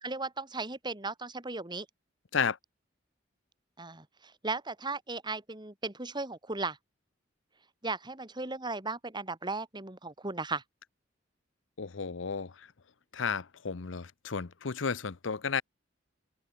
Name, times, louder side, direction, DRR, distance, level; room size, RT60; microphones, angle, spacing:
voice 1, 0.0-1.9 3.8-6.8 7.8-10.6, right 3 dB, 25° right, 2.7 m, -36 dB
voice 2, 11.8-12.5 13.1-15.6, left 6 dB, 75° left, 0.8 m, -32 dB
open air
head